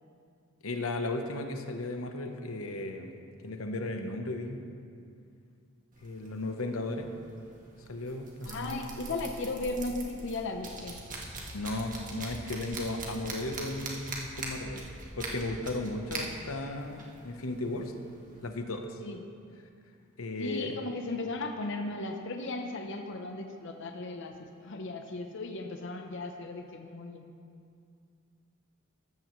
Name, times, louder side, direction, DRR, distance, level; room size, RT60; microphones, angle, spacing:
voice 1, 0.6-3.1 3.4-4.6 6.0-7.1 7.9-8.8 11.5-14.9 15.2-17.9 18.4-19.0 20.2-20.8, left 2 dB, 90° left, 5 dB, 0.9 m, -35 dB
sound 1, 5.9-18.5, right 2 dB, 40° right, 1.6 m, -43 dB
voice 2, 8.4-11.0 19.0-19.2 20.4-24.3 24.6-27.2, left 2 dB, 60° left, 4 dB, 0.7 m, -36 dB
14.0 x 13.5 x 3.1 m, 2.4 s
head